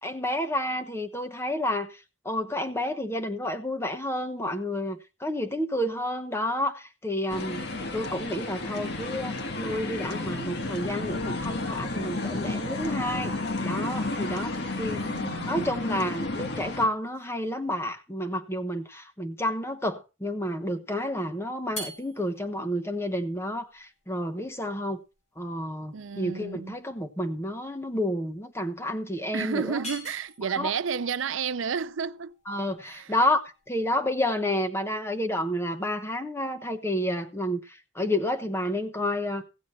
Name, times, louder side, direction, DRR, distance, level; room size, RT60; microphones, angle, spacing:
voice 1, 0.0-2.0 2.2-7.6 7.9-13.3 13.6-15.0 15.5-25.0 25.4-29.7 30.6-30.7 32.5-39.4, left 1 dB, 15° left, 1.0 m, -30 dB
sound 1, 7.3-16.9, left 2 dB, 55° left, 1.4 m, -32 dB
voice 2, 15.0-16.1 25.9-26.8 29.3-32.3 32.8-33.1, right 6 dB, 75° right, 0.5 m, -32 dB
sound 2, 21.6-34.1, equal, 35° left, 6.3 m, -46 dB
16.0 x 8.2 x 4.3 m
head